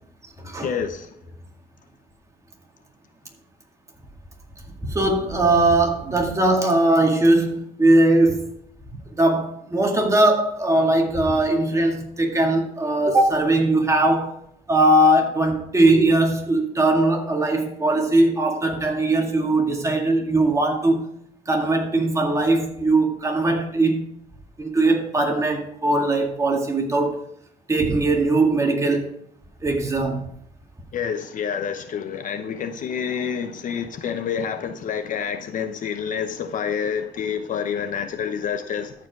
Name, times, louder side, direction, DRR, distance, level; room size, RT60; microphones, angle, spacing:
voice 1, 0.6-1.1 30.9-38.9, left 7 dB, 50° left, 0.8 m, -28 dB
voice 2, 4.8-8.5 9.2-14.3 14.7-21.0 21.5-24.0 24.6-27.2 27.7-29.1 29.6-30.2, right 2 dB, 20° right, 2.1 m, -20 dB
14.0 x 5.1 x 4.7 m
cardioid pair, 110°, 17 cm